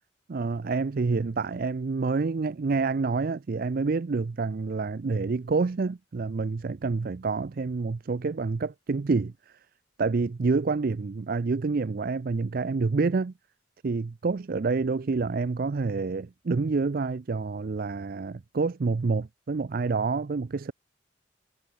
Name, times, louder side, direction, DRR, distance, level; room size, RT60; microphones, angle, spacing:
voice 1, 0.3-9.3 10.0-13.3 13.8-20.7, right 4 dB, 50° right, 0.4 m, -28 dB
head